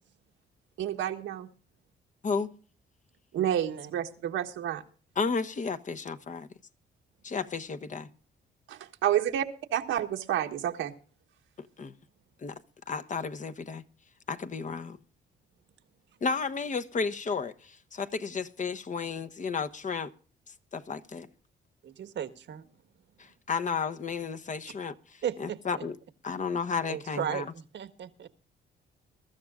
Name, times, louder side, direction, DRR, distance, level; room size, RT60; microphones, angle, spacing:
voice 1, 0.8-1.5 3.3-4.8 8.7-9.4 9.7-10.9, right 11 dB, 85° right, 1.6 m, -29 dB
voice 2, 3.3-3.9 21.8-22.6 25.2-25.8 26.9-28.3, right 9 dB, 65° right, 1.3 m, -36 dB
voice 3, 5.2-6.5 7.2-8.1 11.8-11.9 12.4-12.5 12.9-13.8 14.3-15.0 16.2-20.1 20.7-21.3 23.5-24.9 25.4-25.9 26.2-27.4, left 5 dB, 40° left, 1.0 m, -32 dB
22.5 x 13.0 x 2.4 m
cardioid pair, 90°, 20 cm